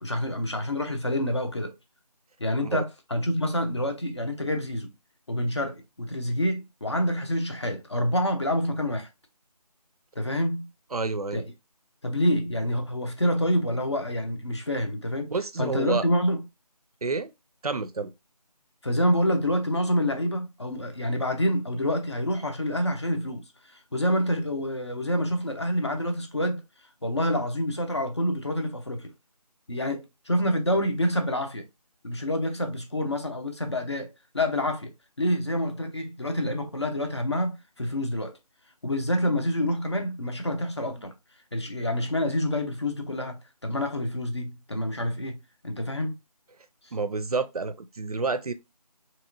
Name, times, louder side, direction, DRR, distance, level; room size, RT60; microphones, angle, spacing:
voice 1, 0.0-1.7 2.4-4.9 5.3-9.1 10.2-10.7 11.3-11.4 12.0-15.3 15.6-16.4 18.8-26.6 27.0-29.1 29.7-31.6 32.0-38.4 38.8-41.1 41.5-45.4 45.6-46.1, left 1 dB, 45° left, 0.6 m, -27 dB
voice 2, 10.9-11.4 15.3-16.0 17.0-17.3 17.6-18.1 46.9-48.5, right 4 dB, 65° right, 0.5 m, -29 dB
3.0 x 2.9 x 2.6 m
figure-of-eight pair, 175°, 21 cm